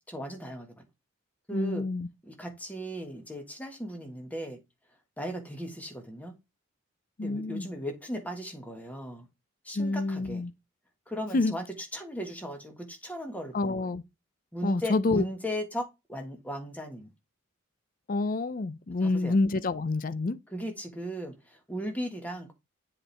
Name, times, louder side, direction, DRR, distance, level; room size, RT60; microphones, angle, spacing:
voice 1, 0.1-0.8 1.5-1.8 2.2-4.6 5.2-6.3 7.2-9.2 9.6-10.4 11.1-11.6 11.9-13.9 14.5-17.1 19.0-19.4 20.5-22.5, equal, 5° left, 1.5 m, -37 dB
voice 2, 1.5-2.1 7.2-7.7 9.7-10.5 11.3-11.5 13.5-14.0 14.6-15.2 18.1-20.4, left 3 dB, 40° left, 0.5 m, -28 dB
7.7 x 4.4 x 3.3 m
head